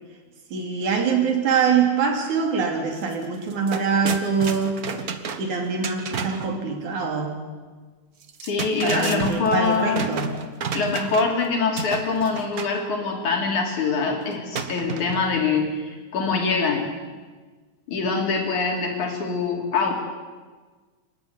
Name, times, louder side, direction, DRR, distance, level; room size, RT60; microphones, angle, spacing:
voice 1, 0.5-4.8 5.4-7.4 8.8-10.3, right 5 dB, 90° right, 3 dB, 4.4 m, -24 dB
sound 1, 3.0-3.1 3.4-6.5 8.2-11.4 11.8-12.8 14.5-15.4, right 5 dB, 50° right, 1.1 m, -31 dB
voice 2, 8.4-10.2 10.7-16.8 17.9-20.0, left 4 dB, 85° left, 1 dB, 4.7 m, -24 dB
27.5 x 12.5 x 9.6 m, 1.4 s
omnidirectional pair, 3.3 m